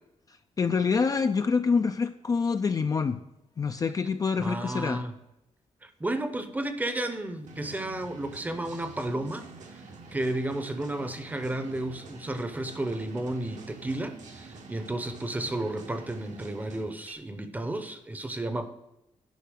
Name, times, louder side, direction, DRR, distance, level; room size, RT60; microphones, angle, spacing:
voice 1, 0.6-3.2 3.6-5.0, left 5 dB, 30° left, 8 dB, 0.4 m, -26 dB
voice 2, 4.4-5.2 5.8-9.8 10.1-18.7, right 1 dB, 15° right, 9 dB, 0.7 m, -32 dB
sound 1, 7.4-17.1, right 4 dB, 80° right, 1.6 m, -47 dB
10.0 x 5.6 x 6.3 m, 0.90 s
wide cardioid pair, 175°, 12 cm